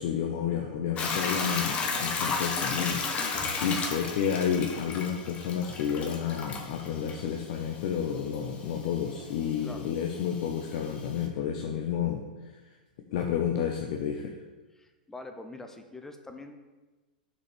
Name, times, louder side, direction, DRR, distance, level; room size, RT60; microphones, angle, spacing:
voice 1, 0.0-12.2 13.1-14.3, left 8 dB, 45° left, 2 dB, 0.8 m, -30 dB
Hiss / Toilet flush / Trickle dribble, 1.0-11.3, left 4 dB, 25° left, 1.2 m, -34 dB
voice 2, 14.8-16.6, left 2 dB, 10° left, 5 dB, 0.8 m, -44 dB
7.1 x 5.1 x 6.8 m, 1.2 s
figure-of-eight pair, 100°, 5 cm